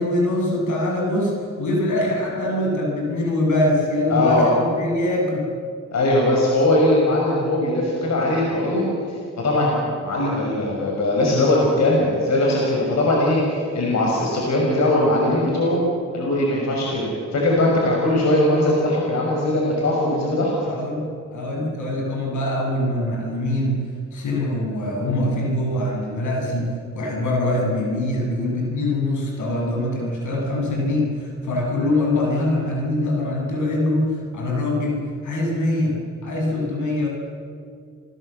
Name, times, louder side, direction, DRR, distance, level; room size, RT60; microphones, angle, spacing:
voice 1, 0.0-5.5 20.7-23.8 24.1-36.0 36.2-37.1, left 1 dB, 80° left, 0 dB, 7.9 m, -23 dB
voice 2, 4.1-4.5 5.9-15.8 16.1-20.5, left 1 dB, 60° left, -2 dB, 5.8 m, -20 dB
29.0 x 20.0 x 7.9 m, 2.3 s
cardioid pair, 100°, 30 cm